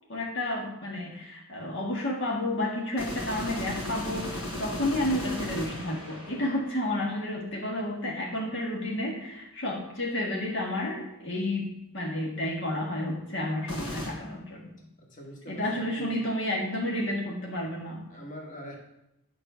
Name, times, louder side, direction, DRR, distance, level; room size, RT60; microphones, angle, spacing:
voice 1, 0.1-11.7 11.9-14.7 15.5-18.1, left 1 dB, 60° left, -1 dB, 1.7 m, -31 dB
sound 1, 3.0-7.0 13.7-14.1, left 1 dB, 85° left, 3.8 m, -36 dB
voice 2, 15.0-16.3 18.1-18.8, equal, 35° left, 0 dB, 1.9 m, -43 dB
9.9 x 5.6 x 6.2 m, 0.84 s
head